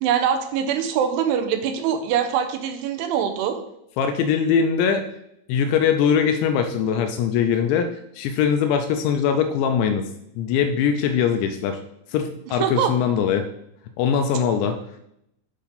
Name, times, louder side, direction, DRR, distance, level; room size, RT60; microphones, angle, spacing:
voice 1, 0.0-3.6 12.6-12.9, right 8 dB, 90° right, 7 dB, 3.1 m, -23 dB
voice 2, 4.0-5.0 5.5-7.9 8.2-10.1 10.4-11.8 12.1-13.5 14.0-14.8, left 7 dB, 85° left, 6 dB, 2.6 m, -21 dB
8.5 x 3.6 x 5.7 m, 0.78 s
omnidirectional pair, 5.5 m